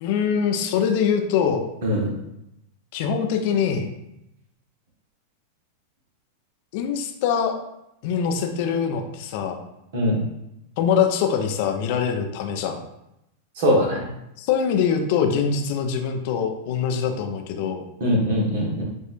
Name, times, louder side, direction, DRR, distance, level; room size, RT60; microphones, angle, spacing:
voice 1, 0.0-1.7 2.9-3.9 6.7-7.5 8.0-9.6 10.8-12.8 14.4-17.8, left 7 dB, 50° left, 4 dB, 0.6 m, -23 dB
voice 2, 13.6-14.0 18.0-18.8, equal, 55° right, -2 dB, 1.4 m, -21 dB
7.3 x 2.7 x 2.5 m, 0.85 s
figure-of-eight pair, 90°, 0 cm